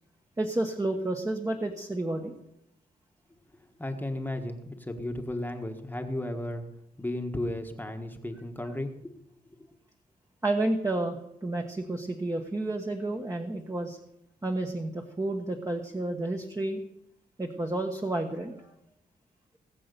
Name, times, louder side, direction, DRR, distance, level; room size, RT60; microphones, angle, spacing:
voice 1, 0.4-2.3 10.4-14.0 14.4-16.8 17.4-18.7, right 2 dB, 20° right, 3 dB, 1.4 m, -31 dB
voice 2, 3.6-6.6 7.0-9.1, left 1 dB, 10° left, 4 dB, 1.4 m, -34 dB
19.5 x 7.7 x 6.9 m, 0.82 s
wide cardioid pair, 110°, 17 cm